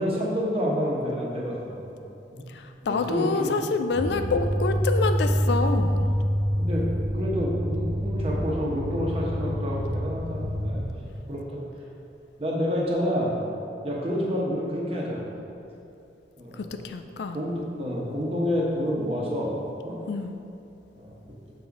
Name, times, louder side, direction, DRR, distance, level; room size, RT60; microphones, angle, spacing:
voice 1, 0.0-1.9 2.3-2.4 2.9-3.5 6.6-6.8 7.1-11.0 11.3-11.6 12.4-13.3 13.8-15.2 16.4-16.9 17.3-19.5 19.8-20.0 21.0-21.3, equal, 35° right, -4 dB, 1.1 m, -28 dB
voice 2, 2.9-6.0 16.9-17.4 20.1-20.4, left 4 dB, 65° left, 7 dB, 0.4 m, -26 dB
sound 1, 3.9-10.9, equal, 75° right, 1.2 m, -26 dB
6.6 x 3.9 x 4.7 m, 2.7 s
head